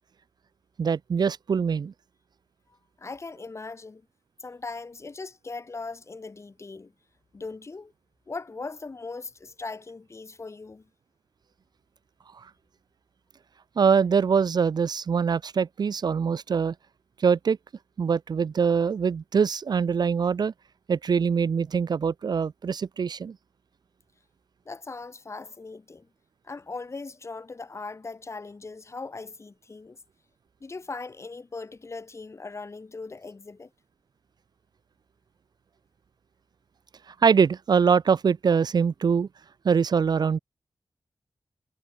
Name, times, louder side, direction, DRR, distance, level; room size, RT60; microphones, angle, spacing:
voice 1, 0.8-1.9 12.4-12.5 13.8-16.7 17.2-17.6 18.0-20.5 20.9-23.4 37.1-39.3 39.6-40.4, right 6 dB, 60° right, 0.7 m, -23 dB
voice 2, 2.7-4.1 4.4-6.9 7.3-7.9 8.3-10.9 24.6-26.1 26.4-30.0 30.6-33.7, left 3 dB, 35° left, 5.0 m, -39 dB
wide cardioid pair, 145°, 8 cm